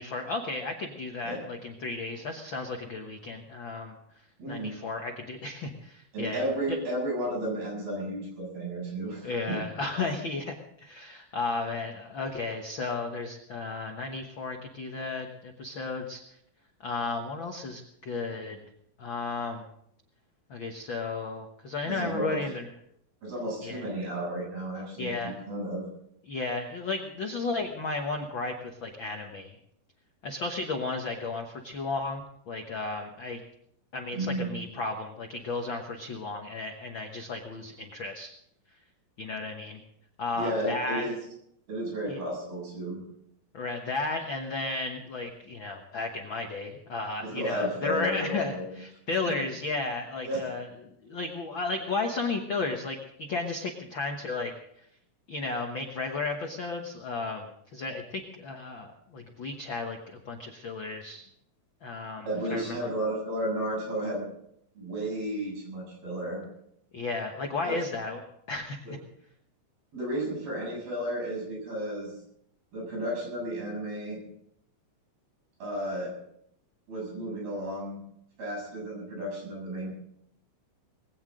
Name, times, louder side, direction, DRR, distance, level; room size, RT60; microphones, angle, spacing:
voice 1, 0.0-3.9 4.5-6.8 9.2-16.2 16.8-18.6 19.0-19.6 20.5-22.7 23.6-23.8 25.0-25.4 26.2-29.6 30.2-33.4 33.9-38.3 39.2-39.8 40.2-41.1 42.1-42.2 43.5-50.7 51.0-54.5 55.3-61.2 61.8-62.9 66.9-68.9, left 3 dB, 85° left, 3 dB, 1.0 m, -34 dB
voice 2, 4.4-4.7 6.1-9.6 9.9-10.1 21.9-22.4 23.2-25.8 34.1-34.5 40.4-41.1 41.7-43.0 47.2-48.7 50.2-50.4 62.3-64.2 64.8-66.4 67.6-67.8 68.9-69.0 69.9-72.1 72.7-74.2 75.6-76.1 76.9-78.0 78.4-79.9, right 1 dB, 85° right, -1 dB, 9.2 m, -33 dB
20.0 x 17.0 x 3.8 m, 0.72 s
omnidirectional pair, 4.2 m